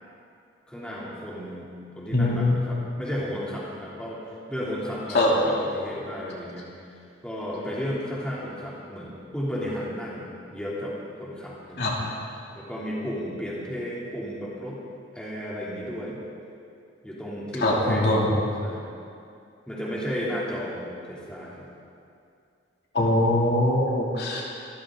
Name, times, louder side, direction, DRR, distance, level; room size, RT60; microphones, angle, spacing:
voice 1, 0.7-1.7 2.0-4.2 4.5-6.7 7.2-12.1 12.5-14.8 15.1-16.2 17.0-18.2 18.6-18.9 19.7-21.7, equal, 5° left, -7 dB, 3.0 m, -33 dB
voice 2, 2.1-2.5 5.1-5.3 11.8-11.9 17.6-18.3 22.9-24.6, left 1 dB, 60° left, -3 dB, 2.9 m, -22 dB
25.0 x 14.5 x 3.9 m, 2.5 s
head